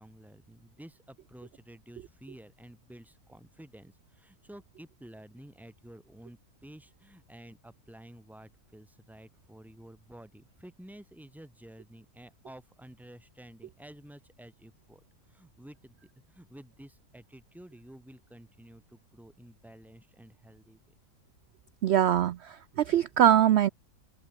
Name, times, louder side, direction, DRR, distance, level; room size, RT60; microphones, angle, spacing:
voice 1, 0.0-16.0 16.3-20.8, right 1 dB, ahead, 2.7 m, -51 dB
voice 2, 21.8-23.7, right 10 dB, 65° right, 0.6 m, -23 dB
open air
omnidirectional pair, 1.6 m